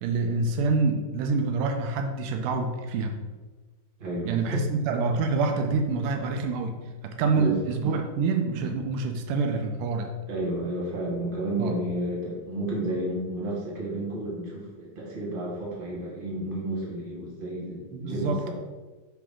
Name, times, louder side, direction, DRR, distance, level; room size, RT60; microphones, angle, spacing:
voice 1, 0.0-3.2 4.3-6.8 7.0-10.1 11.6-11.7 17.9-18.5, right 4 dB, 85° right, 4 dB, 2.3 m, -26 dB
voice 2, 4.0-4.6 7.3-7.7 10.3-18.5, right 1 dB, 20° right, -5 dB, 1.6 m, -31 dB
10.5 x 3.9 x 3.7 m, 1.3 s
omnidirectional pair, 3.8 m